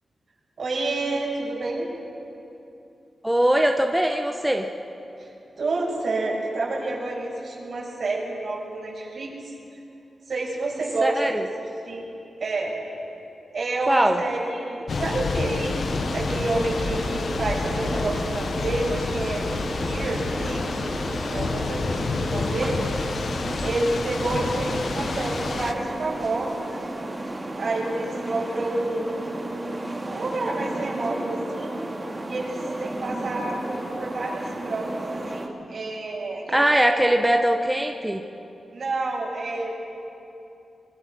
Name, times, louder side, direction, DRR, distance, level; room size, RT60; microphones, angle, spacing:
voice 1, 0.6-1.9 5.2-5.3 5.6-9.5 10.3-11.5 11.8-12.0 12.4-12.7 13.5-15.8 16.1-19.5 19.8-22.8 23.6-26.7 27.5-29.4 30.1-31.8 32.2-35.0 35.3-36.7 37.0-37.1 38.7-39.7, right 2 dB, 65° right, -3 dB, 6.7 m, -29 dB
voice 2, 3.2-4.7 11.0-11.4 13.9-14.2 36.5-38.2, right 1 dB, 10° right, 3 dB, 1.2 m, -21 dB
Thunder / Rain, 14.9-25.7, left 4 dB, 65° left, 1.1 m, -29 dB
sound 1, 15.8-35.5, right 1 dB, 25° right, 3.0 m, -33 dB
25.0 x 22.0 x 6.2 m, 2.8 s
cardioid pair, 75°, 0 cm